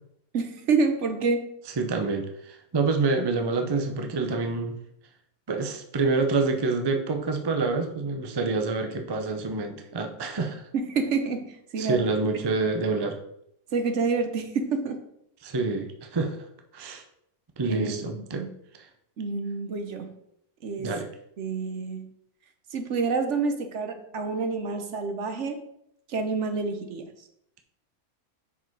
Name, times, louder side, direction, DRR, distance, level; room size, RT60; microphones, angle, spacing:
voice 1, 0.3-1.5 10.7-12.0 13.7-15.0 17.6-18.5 19.2-20.1 20.6-21.0 21.4-22.1 22.7-25.6 26.1-27.1, right 4 dB, 60° right, 7 dB, 1.0 m, -28 dB
voice 2, 1.8-4.8 5.5-10.6 11.8-13.2 15.4-16.4 16.7-17.0 17.6-18.5 18.8-18.9 20.8-21.1, right 3 dB, 35° right, 4 dB, 0.4 m, -27 dB
6.0 x 5.0 x 4.5 m, 0.75 s
omnidirectional pair, 1.5 m